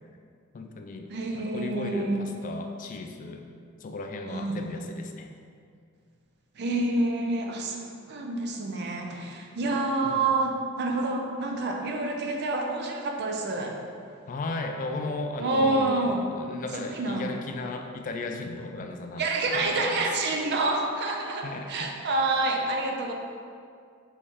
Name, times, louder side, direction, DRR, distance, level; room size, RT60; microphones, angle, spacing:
voice 1, 0.5-3.5 3.8-5.3 10.0-10.2 14.3-20.1 21.4-21.9, left 2 dB, 40° left, 4 dB, 0.3 m, -35 dB
voice 2, 1.1-2.2 4.3-4.7 6.6-7.8 8.1-13.8 15.4-16.2 16.8-17.3 19.2-23.1, right 2 dB, 50° right, 1 dB, 0.5 m, -28 dB
4.2 x 3.1 x 3.5 m, 2.3 s
head